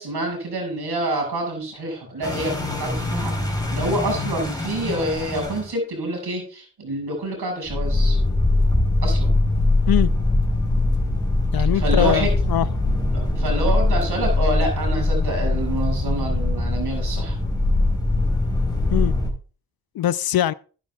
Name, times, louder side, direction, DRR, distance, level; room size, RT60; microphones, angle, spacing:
voice 1, 0.0-8.2 9.0-9.3 11.7-12.3 13.1-17.4, right 1 dB, 65° right, 6.6 m, -27 dB
sound 1, 2.2-5.7 7.7-19.3, left 2 dB, 10° left, 4.3 m, -22 dB
voice 2, 11.5-12.7 18.9-19.1 20.0-20.5, left 12 dB, 55° left, 0.5 m, -22 dB
14.0 x 10.5 x 2.4 m
supercardioid pair, 45°, 43 cm